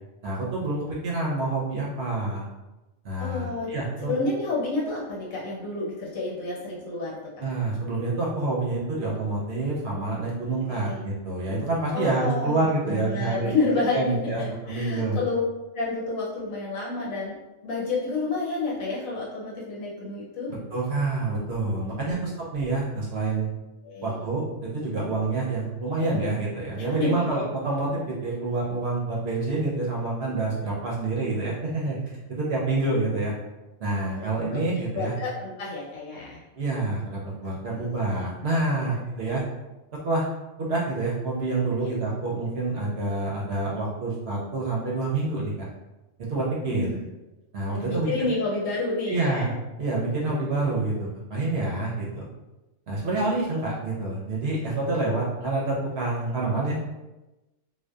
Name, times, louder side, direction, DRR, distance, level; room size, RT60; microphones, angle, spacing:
voice 1, 0.2-2.5 3.0-4.1 7.4-13.5 13.9-15.2 20.5-23.5 24.0-32.0 32.3-33.3 33.8-35.1 36.6-39.4 40.0-40.2 40.6-45.5 46.2-46.9 47.5-48.3 49.1-49.5 49.8-52.3 52.9-56.8, right 2 dB, 60° right, -4 dB, 0.7 m, -27 dB
voice 2, 3.2-3.7 4.0-7.2 10.7-11.0 11.9-15.4 15.7-17.3 17.6-20.5 21.9-22.1 23.8-24.3 26.9-27.2 34.1-34.6 34.9-36.4 37.8-38.0 38.9-39.0 41.8-41.9 46.7-47.1 47.7-49.5, left 3 dB, 85° left, -5 dB, 1.2 m, -30 dB
2.6 x 2.2 x 2.2 m, 1.0 s
omnidirectional pair, 1.4 m